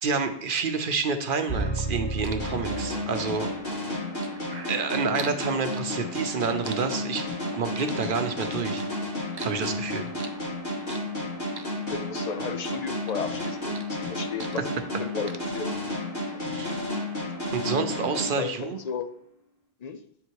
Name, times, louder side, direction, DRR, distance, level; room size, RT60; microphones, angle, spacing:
voice 1, 0.0-3.5 4.7-7.3 7.5-8.8 9.4-10.1 16.5-16.8 17.5-18.8, right 5 dB, 60° right, 7 dB, 0.8 m, -28 dB
sound 1, 1.0-5.4 5.8-7.6 7.9-9.0 9.3-11.2 11.5-12.6 12.9-15.0 15.3-15.4, right 5 dB, 45° right, 0.3 m, -43 dB
sound 2, 1.5-3.6, right 2 dB, 15° left, 1.4 m, -32 dB
sound 3, 2.4-19.0, left 1 dB, 70° left, 3.1 m, -32 dB
voice 2, 11.9-15.7 16.3-16.4 18.4-19.1 19.8-20.0, left 6 dB, 50° left, 10 dB, 0.5 m, -34 dB
8.2 x 3.7 x 4.6 m, 0.67 s
omnidirectional pair, 1.0 m